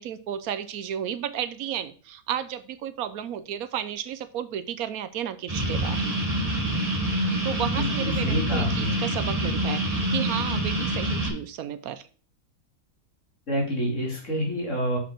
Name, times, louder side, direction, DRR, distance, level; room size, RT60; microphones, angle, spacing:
voice 1, 0.0-6.1 7.4-12.1, right 10 dB, 80° right, 13 dB, 1.1 m, -33 dB
sound 1, 5.5-11.3, right 1 dB, 25° right, 2.0 m, -26 dB
voice 2, 7.8-8.9 13.5-15.0, equal, 55° left, -2 dB, 3.1 m, -28 dB
6.6 x 5.1 x 5.8 m, 0.40 s
omnidirectional pair, 1.5 m